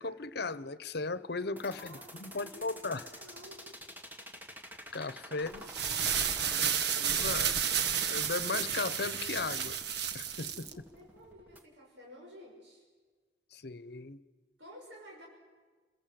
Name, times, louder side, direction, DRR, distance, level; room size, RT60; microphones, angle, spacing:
voice 1, 0.0-3.0 4.9-5.6 7.0-7.5 8.1-9.8 10.1-10.7 13.5-14.2, left 3 dB, 65° left, 16 dB, 1.1 m, -36 dB
sound 1, 1.6-11.6, equal, 10° right, 2.2 m, -49 dB
voice 2, 1.6-3.7 5.3-6.3 10.6-12.8 14.6-15.3, left 1 dB, 85° right, -1 dB, 6.1 m, -53 dB
sound 2, 5.5-10.7, right 8 dB, 65° right, 1.3 m, -31 dB
28.5 x 21.5 x 7.8 m, 1.4 s
head